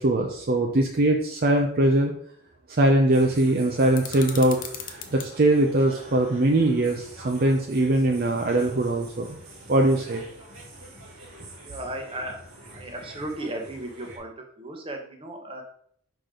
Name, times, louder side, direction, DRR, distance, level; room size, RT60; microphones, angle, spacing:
voice 1, 0.0-2.1 2.7-9.3 9.7-10.2, right 1 dB, 45° right, 2 dB, 0.6 m, -22 dB
sound 1, 3.1-14.2, right 1 dB, 90° right, 2.5 m, -45 dB
sound 2, 3.9-5.3, left 8 dB, 40° left, 0.7 m, -38 dB
voice 2, 11.6-12.4 12.7-15.6, right 1 dB, 25° right, 3 dB, 1.0 m, -35 dB
6.0 x 5.0 x 3.8 m, 0.63 s
head